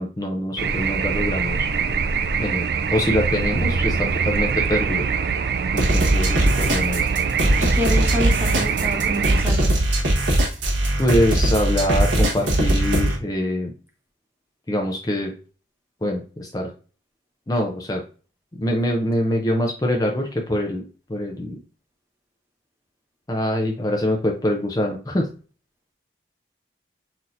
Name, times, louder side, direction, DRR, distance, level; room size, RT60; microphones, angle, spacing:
voice 1, 0.0-1.7 2.4-5.0 5.7-7.1 11.0-13.7 14.7-15.3 16.0-16.7 17.5-18.0 18.6-20.8 21.1-21.6 23.3-25.3, left 1 dB, 20° left, 1 dB, 0.5 m, -24 dB
sound 1, 0.6-9.4, right 5 dB, 60° right, 0.3 m, -23 dB
sound 2, 5.8-13.2, right 1 dB, 90° right, 1.2 m, -20 dB
voice 2, 7.6-9.8, equal, 15° right, 2 dB, 0.7 m, -28 dB
5.8 x 2.8 x 2.5 m, 0.37 s
head